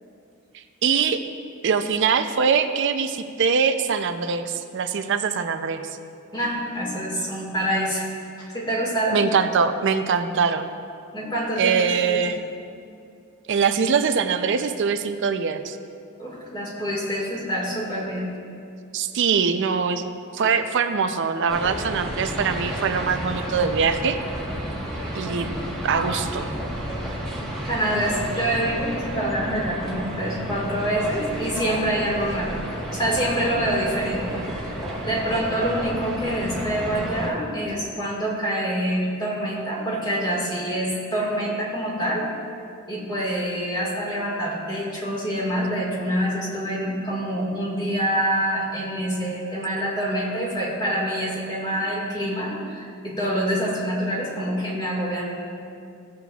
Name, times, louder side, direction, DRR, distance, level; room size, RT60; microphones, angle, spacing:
voice 1, 0.8-1.2 1.6-5.8 9.1-10.7 11.6-12.4 13.5-15.8 18.9-20.0 20.3-24.2 25.1-25.5 25.8-26.5, right 6 dB, 55° right, 9 dB, 0.5 m, -23 dB
voice 2, 6.3-8.1 8.4-9.2 11.1-12.2 16.2-18.3 27.7-42.3 42.9-55.2, right 1 dB, 20° left, -4 dB, 1.8 m, -26 dB
sound 1, 21.5-37.3, right 1 dB, 5° left, 1.3 m, -31 dB
15.5 x 7.4 x 2.3 m, 2.5 s
head